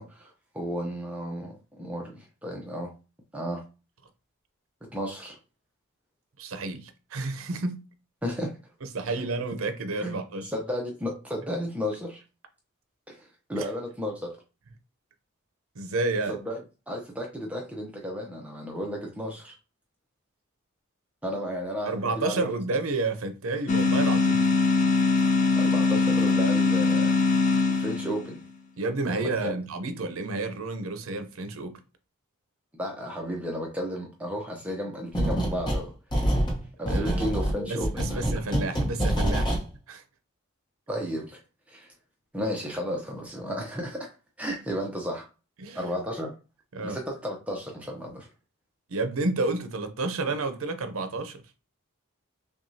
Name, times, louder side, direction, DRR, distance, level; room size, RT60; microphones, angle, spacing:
voice 1, 0.0-2.9 3.3-3.6 4.9-5.4 8.2-8.6 9.0-9.3 10.0-10.2 10.5-12.2 13.1-14.4 16.3-16.6 16.9-19.5 21.2-22.5 25.6-27.1 27.7-28.4 29.1-29.6 32.7-35.9 36.8-38.2 40.9-41.4 41.7-41.9 42.3-45.3 45.7-46.3 46.8-48.3, equal, 5° right, 0.6 m, -33 dB
voice 2, 6.4-7.8 8.8-10.5 13.6-13.7 15.7-16.4 21.9-24.5 28.8-31.8 36.9-37.4 37.7-39.6 39.9-40.0 45.6-45.8 46.7-47.0 48.9-51.4, right 3 dB, 70° right, 0.7 m, -30 dB
sound 1, 23.7-28.4, left 4 dB, 35° left, 0.4 m, -22 dB
sound 2, 35.1-35.8 36.1-39.6, right 1 dB, 20° left, 0.9 m, -26 dB
5.9 x 2.3 x 2.7 m
head